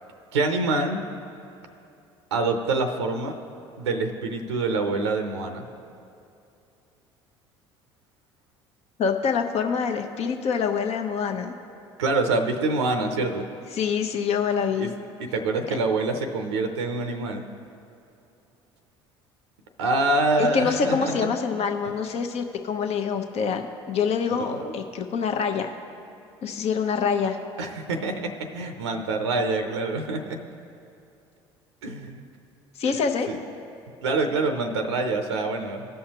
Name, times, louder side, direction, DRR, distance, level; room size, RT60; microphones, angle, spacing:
voice 1, 0.3-1.0 2.3-3.4 3.8-5.7 12.0-13.5 14.8-14.9 15.2-17.4 19.8-21.3 24.4-24.7 27.6-30.4 31.8-32.2 32.8-33.0 33.3-33.4 34.0-35.9, right 3 dB, 90° right, 5 dB, 0.6 m, -26 dB
voice 2, 9.0-11.5 13.7-14.9 15.7-15.8 20.4-25.7 26.4-27.4 32.8-33.3, left 6 dB, 50° left, 5 dB, 0.8 m, -25 dB
17.0 x 5.6 x 2.9 m, 2.6 s
hypercardioid pair, 65°, 14 cm